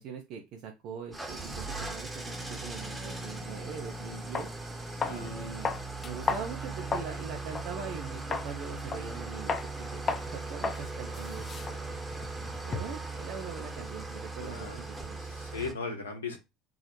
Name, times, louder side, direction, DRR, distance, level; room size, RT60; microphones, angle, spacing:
voice 1, 0.0-4.5 5.1-5.7 6.0-11.9 12.6-15.2, right 6 dB, 55° right, 3 dB, 0.6 m, -42 dB
Engine starting / Idling, 1.1-15.7, right 3 dB, 15° right, 0.8 m, -39 dB
sound 1, 3.8-3.9 4.3-4.5 5.0-5.3 5.6-7.2 7.5-7.7 8.3-8.5 8.9-9.2 9.5-9.7 10.1-10.3 10.6-10.8 11.1-13.1, left 4 dB, 30° left, 0.5 m, -34 dB
voice 2, 14.4-14.8 15.3-16.4, left 4 dB, 80° left, 3 dB, 0.8 m, -37 dB
3.9 x 2.1 x 3.0 m, 0.24 s
figure-of-eight pair, 65°, 0 cm